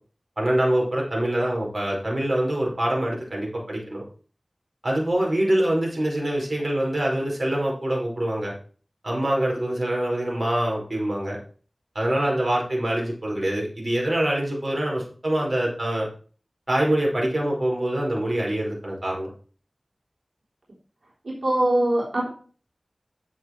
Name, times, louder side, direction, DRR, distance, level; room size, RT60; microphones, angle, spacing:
voice 1, 0.4-4.0 4.8-8.5 9.0-11.4 11.9-16.1 16.7-19.3, right 1 dB, 50° right, -2 dB, 5.1 m, -25 dB
voice 2, 21.3-22.3, right 1 dB, 85° right, -4 dB, 3.5 m, -22 dB
9.1 x 7.7 x 4.5 m, 0.41 s
wide cardioid pair, 55°, 0 cm